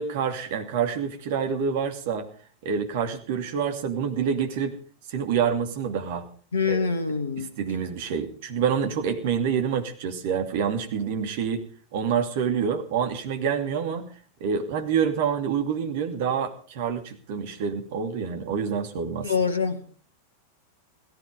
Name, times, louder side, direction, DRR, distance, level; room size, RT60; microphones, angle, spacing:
voice 1, 0.0-2.3 2.6-4.8 5.1-6.3 6.7-6.8 7.4-14.1 14.4-19.3, right 7 dB, 50° right, 2.6 m, -27 dB
voice 2, 6.5-7.5 19.2-19.8, left 5 dB, 70° left, 1.5 m, -25 dB
16.5 x 14.5 x 5.2 m
figure-of-eight pair, 90°, 0 cm